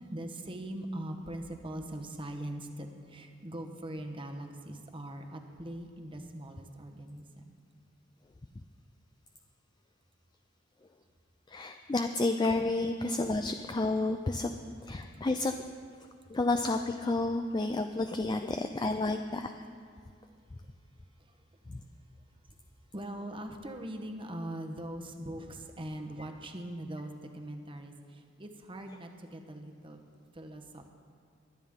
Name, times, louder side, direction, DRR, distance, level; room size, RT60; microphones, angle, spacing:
voice 1, 0.0-7.6 20.2-20.3 21.2-21.4 22.9-30.0 30.3-30.9, right 1 dB, 25° right, 5 dB, 1.0 m, -41 dB
voice 2, 11.5-14.5 14.8-15.5 16.3-19.5 21.7-21.8, left 2 dB, 20° left, 6 dB, 0.4 m, -30 dB
22.5 x 9.1 x 3.7 m, 2.2 s
head